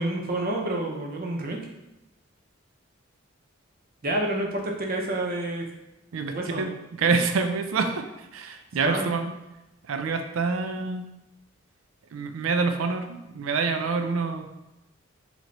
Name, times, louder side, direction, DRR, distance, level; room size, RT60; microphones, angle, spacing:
voice 1, 0.0-1.6 4.0-5.6 6.3-6.7 8.8-9.1, right 1 dB, 45° right, 1 dB, 0.7 m, -28 dB
voice 2, 6.1-6.7 7.0-8.0 8.3-9.3 9.9-11.0 12.1-14.5, right 4 dB, 80° right, 7 dB, 0.4 m, -26 dB
3.3 x 3.0 x 3.8 m, 0.95 s
head